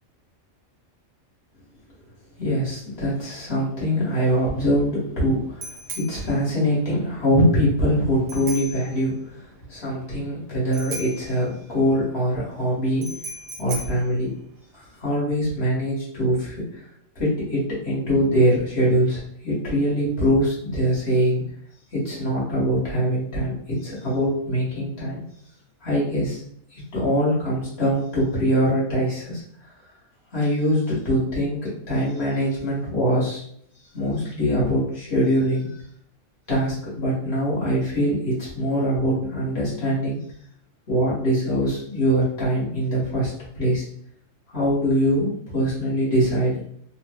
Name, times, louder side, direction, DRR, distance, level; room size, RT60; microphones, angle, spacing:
voice 1, 2.4-13.1 13.6-14.3 14.7-16.8 17.1-21.4 21.9-25.2 25.8-26.4 26.7-29.4 30.3-33.4 33.9-35.7 36.5-40.2 40.9-43.8 44.5-46.6, equal, 55° left, -6 dB, 1.4 m, -23 dB
Bicycle bell, 3.9-15.1, right 2 dB, 70° right, 1.0 m, -40 dB
3.1 x 2.0 x 3.3 m, 0.64 s
omnidirectional pair, 1.3 m